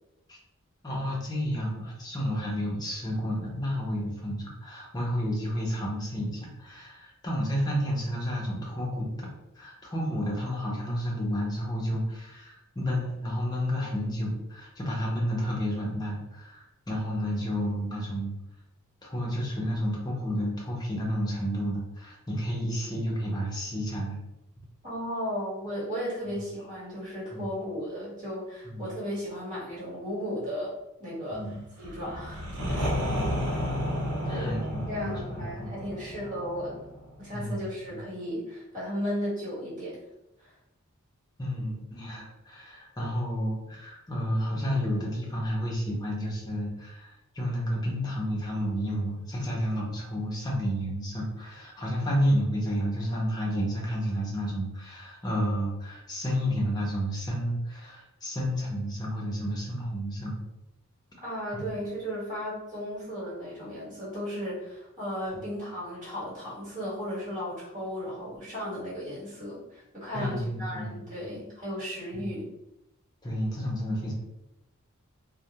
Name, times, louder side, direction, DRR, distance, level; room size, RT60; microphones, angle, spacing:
voice 1, 0.8-9.1 9.6-18.3 19.0-24.2 26.3-26.5 27.3-27.5 28.6-28.9 31.3-31.6 32.9-33.4 34.2-35.7 37.3-37.6 41.4-60.4 65.3-65.4 70.1-71.4 72.1-72.4 73.2-74.1, equal, 20° left, -3 dB, 0.6 m, -31 dB
voice 2, 24.8-30.7 31.0-31.5 31.8-33.0 34.2-34.5 34.9-36.8 37.2-40.0 40.4-40.5 61.2-72.5, equal, 40° right, -8 dB, 1.4 m, -35 dB
sound 1, 31.8-37.5, equal, 90° right, 0.6 m, -32 dB
2.3 x 2.1 x 2.8 m, 0.89 s
head